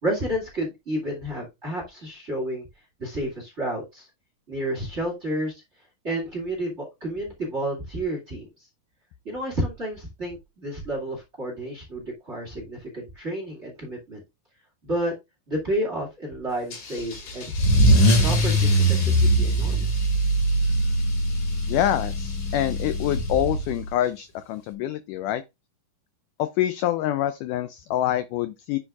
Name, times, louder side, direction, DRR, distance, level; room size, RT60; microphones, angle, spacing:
voice 1, 0.0-2.7 3.0-4.1 4.5-5.6 6.0-8.5 9.2-14.2 14.8-15.1 15.5-17.5 18.2-20.1, right 1 dB, 25° right, 1.8 m, -30 dB
Car / Engine starting / Accelerating revving vroom, 16.7-23.9, right 1 dB, 65° left, 3.7 m, -22 dB
voice 2, 21.7-25.4 26.4-28.8, left 12 dB, 85° left, 1.8 m, -26 dB
9.8 x 7.1 x 2.4 m
omnidirectional pair, 4.2 m